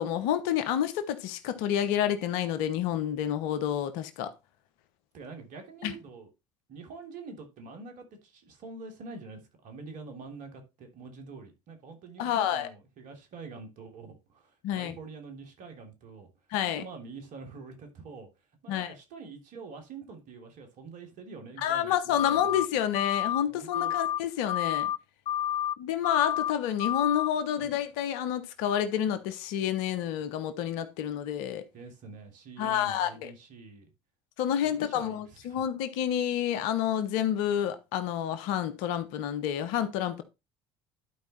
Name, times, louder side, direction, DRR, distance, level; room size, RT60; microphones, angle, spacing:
voice 1, 0.0-4.3 5.8-5.9 12.2-12.7 14.6-14.9 16.5-16.8 18.7-18.9 21.6-24.9 25.8-31.6 32.6-33.3 34.4-40.2, left 10 dB, 70° left, 1.1 m, -29 dB
voice 2, 5.1-6.3 6.7-16.3 16.8-18.3 18.6-22.6 23.5-23.9 27.6-27.7 31.7-33.9 34.6-35.6, right 4 dB, 60° right, 3.0 m, -46 dB
sound 1, 22.2-22.7 22.9-23.4 23.7-24.2 24.5-25.0 25.3-25.7 26.0-26.5 26.8-27.3, left 11 dB, 50° left, 0.6 m, -29 dB
11.5 x 4.7 x 4.2 m
hypercardioid pair, 65°, 15 cm